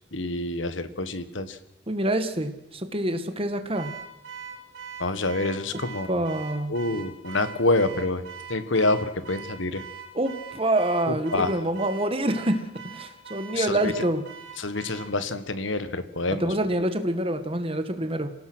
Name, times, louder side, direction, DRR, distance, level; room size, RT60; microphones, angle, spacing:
voice 1, 0.1-1.6 5.0-6.2 6.7-8.2 8.5-9.8 11.1-11.5 13.5-13.9 14.6-16.5, left 2 dB, 70° left, 11 dB, 1.5 m, -27 dB
voice 2, 1.9-3.9 5.7-5.8 6.1-6.7 10.1-14.2 16.4-18.3, right 1 dB, 30° right, 8 dB, 1.7 m, -26 dB
Car / Alarm, 3.7-15.2, right 6 dB, 80° right, 3.2 m, -42 dB
26.5 x 17.5 x 6.3 m, 0.85 s
head